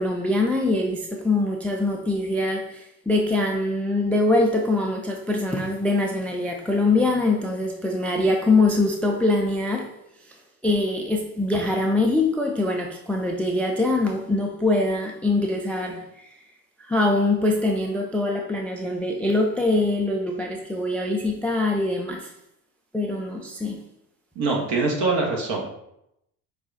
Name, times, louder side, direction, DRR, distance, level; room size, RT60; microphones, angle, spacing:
voice 1, 0.0-9.9 10.3-10.4 10.6-16.3 16.8-22.3 22.9-23.8, left 2 dB, 5° left, 1 dB, 0.4 m, -23 dB
voice 2, 24.3-25.7, right 3 dB, 55° right, 0 dB, 1.3 m, -24 dB
4.7 x 2.4 x 3.8 m, 0.80 s
hypercardioid pair, 55°, 49 cm